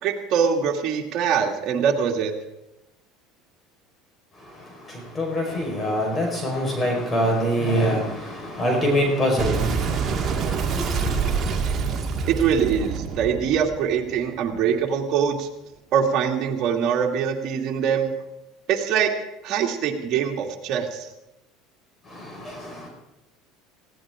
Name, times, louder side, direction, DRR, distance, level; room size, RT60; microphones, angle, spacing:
voice 1, 0.0-2.3 12.3-15.5 15.9-18.1 18.7-19.1 19.4-21.1, right 7 dB, 55° right, 1 dB, 2.5 m, -23 dB
voice 2, 5.1-11.4 22.1-22.9, equal, 25° left, 1 dB, 4.8 m, -25 dB
Boom, 9.4-14.6, right 5 dB, 40° right, 2.0 m, -26 dB
19.0 x 16.5 x 3.8 m, 0.92 s
supercardioid pair, 100°, 0 cm